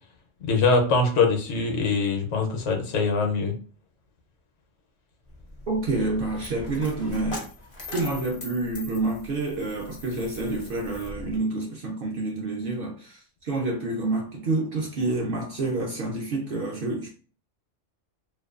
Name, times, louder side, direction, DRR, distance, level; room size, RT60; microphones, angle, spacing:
voice 1, 0.4-3.5, left 4 dB, 70° left, 0.9 m, -23 dB
Coin (dropping), 5.3-11.4, left 1 dB, 45° left, 0.4 m, -40 dB
voice 2, 5.7-7.5 7.9-17.1, right 2 dB, 60° right, 0.6 m, -28 dB
2.4 x 2.2 x 2.3 m
omnidirectional pair, 1.3 m